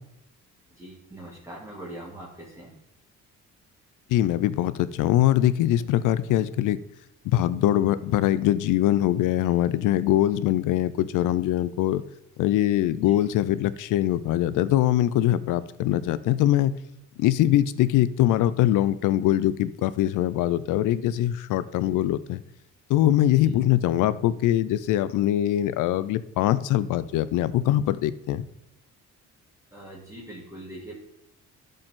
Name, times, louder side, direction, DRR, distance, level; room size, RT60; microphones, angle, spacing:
voice 1, 0.7-2.8 13.0-13.2 23.4-23.6 29.7-31.0, right 1 dB, 10° right, -5 dB, 2.3 m, -42 dB
voice 2, 4.1-6.8 7.2-12.0 12.4-16.7 17.2-22.4 22.9-28.5, left 13 dB, 85° left, 16 dB, 0.5 m, -22 dB
12.0 x 5.3 x 3.7 m, 0.83 s
cardioid pair, 90°, 30 cm